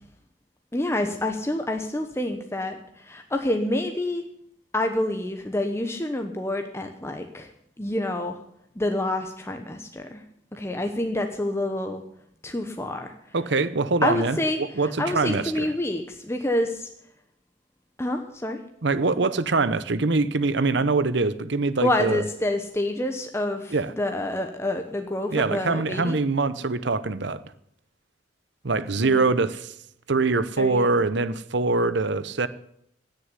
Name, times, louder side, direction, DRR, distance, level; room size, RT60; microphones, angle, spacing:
voice 1, 0.7-4.2 4.7-7.5 7.8-8.4 8.8-10.2 10.5-12.0 12.4-13.1 14.0-16.9 18.0-18.6 21.8-26.2 29.0-29.2 30.6-30.9, left 1 dB, 15° left, 0.9 m, -27 dB
voice 2, 13.3-15.7 18.8-22.2 23.7-23.9 25.3-27.4 28.6-29.7 30.1-32.5, right 3 dB, 65° right, 0.8 m, -24 dB
17.0 x 6.9 x 9.7 m
head